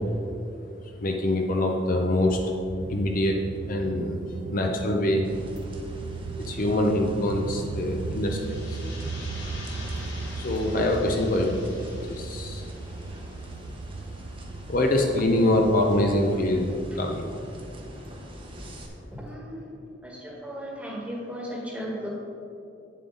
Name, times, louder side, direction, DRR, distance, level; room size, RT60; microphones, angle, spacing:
voice 1, 1.0-2.4 2.9-4.2 4.5-5.3 6.4-8.8 10.4-11.6 12.0-12.7 14.7-17.3, left 1 dB, 45° left, 2 dB, 0.6 m, -24 dB
sound 1, 2.8-16.1, right 4 dB, 60° right, 0.3 m, -37 dB
sound 2, 5.2-18.9, equal, 30° right, 1.0 m, -43 dB
sound 3, 8.0-13.7, left 2 dB, 70° left, 1.9 m, -44 dB
voice 2, 19.1-19.6 20.0-22.1, equal, 5° right, -3 dB, 1.5 m, -36 dB
8.6 x 7.5 x 3.9 m, 2.6 s
head